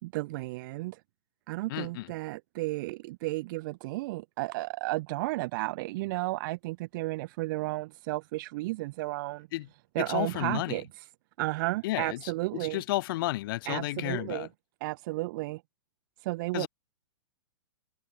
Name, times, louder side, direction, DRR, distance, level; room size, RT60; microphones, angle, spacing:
voice 1, 0.0-1.0 1.5-9.5 9.9-10.9 11.4-12.8 13.7-14.5 14.8-15.6 16.2-16.7, right 20 dB, 45° right, 4.5 m, -33 dB
voice 2, 1.7-2.1 9.5-9.7 10.0-10.8 11.8-14.5 16.5-16.7, left 17 dB, 50° left, 4.8 m, -32 dB
hypercardioid pair, 140°, 15 cm